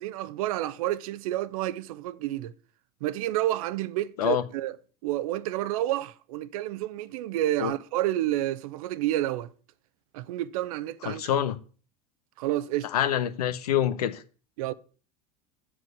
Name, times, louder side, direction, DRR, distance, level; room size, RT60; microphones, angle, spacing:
voice 1, 0.0-2.5 3.0-4.8 5.0-9.5 10.1-11.2 12.4-12.9 14.6-14.7, right 14 dB, 60° right, 0.8 m, -29 dB
voice 2, 11.0-11.6 12.9-14.2, left 10 dB, 70° left, 1.0 m, -26 dB
7.9 x 7.2 x 8.0 m
figure-of-eight pair, 80°, 20 cm